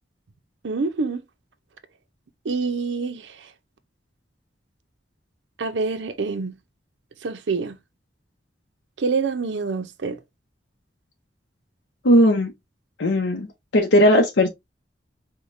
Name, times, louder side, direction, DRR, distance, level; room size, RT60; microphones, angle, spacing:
voice 1, 0.6-1.2 2.4-3.5 5.6-6.6 7.2-7.8 9.0-10.2, right 4 dB, 80° right, 0.5 m, -26 dB
voice 2, 12.0-12.5 13.0-13.5 13.7-14.5, equal, 85° left, 0.6 m, -17 dB
4.8 x 2.2 x 2.5 m
head